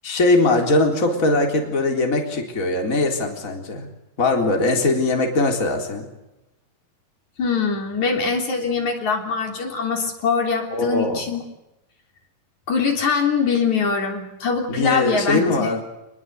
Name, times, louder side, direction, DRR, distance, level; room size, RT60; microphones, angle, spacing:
voice 1, 0.0-3.9 4.2-6.1 10.7-11.2 14.7-15.8, left 2 dB, 25° left, 2 dB, 4.0 m, -21 dB
voice 2, 7.4-11.4 12.7-15.7, left 5 dB, 60° left, 3 dB, 4.6 m, -23 dB
27.5 x 21.0 x 8.0 m, 0.90 s
omnidirectional pair, 3.8 m